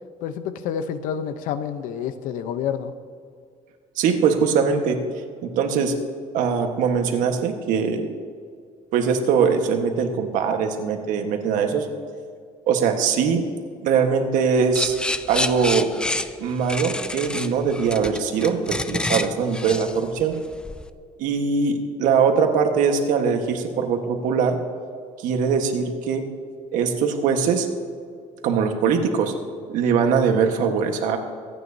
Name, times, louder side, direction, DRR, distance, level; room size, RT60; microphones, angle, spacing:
voice 1, 0.2-2.9, left 8 dB, 80° left, 10 dB, 0.8 m, -28 dB
voice 2, 4.0-5.9 6.3-8.1 8.9-11.9 12.7-13.4 13.8-15.0 15.3-15.9 16.4-20.4 21.2-24.6 25.2-26.3 26.7-27.7 28.4-29.3 29.7-31.2, right 6 dB, 75° right, 5 dB, 1.4 m, -21 dB
sound 1, 14.7-20.9, left 2 dB, 5° left, 0.3 m, -28 dB
24.5 x 9.3 x 2.8 m, 2.2 s
cardioid pair, 165°, 14 cm